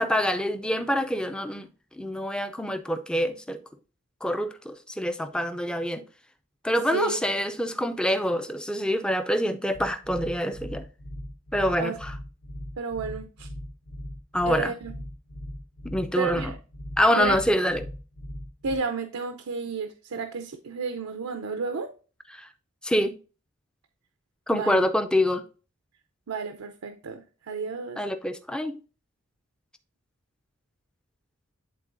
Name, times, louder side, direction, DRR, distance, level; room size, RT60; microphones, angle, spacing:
voice 1, 0.0-1.7 2.0-3.6 4.2-6.0 6.6-10.8 11.5-12.1 14.3-14.7 15.8-16.5 17.0-17.9 22.3-22.5 22.8-23.2 24.5-25.4 28.0-28.8, equal, 5° left, 0.4 m, -26 dB
sound 1, 9.7-18.8, equal, 75° left, 1.1 m, -39 dB
voice 2, 12.8-13.5 14.4-14.9 16.2-16.6 17.1-17.4 18.6-21.9 24.5-24.9 26.3-28.0, right 5 dB, 90° right, 0.6 m, -32 dB
11.0 x 3.8 x 2.6 m
head